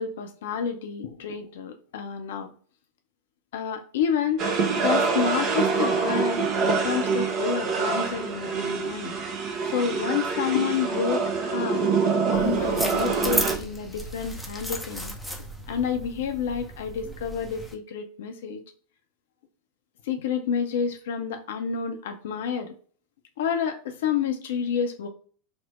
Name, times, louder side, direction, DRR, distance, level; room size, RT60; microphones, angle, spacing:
voice 1, 0.0-2.5 3.5-4.4 4.8-9.2 9.7-11.9 12.3-15.2 15.7-18.6 20.0-22.8 23.4-25.1, left 7 dB, 60° left, 6 dB, 0.5 m, -29 dB
sound 1, 4.4-13.6, right 4 dB, 40° right, 0.6 m, -25 dB
sound 2, 12.3-17.7, equal, ahead, 0.6 m, -34 dB
4.2 x 2.1 x 3.0 m, 0.42 s
figure-of-eight pair, 85°, 0 cm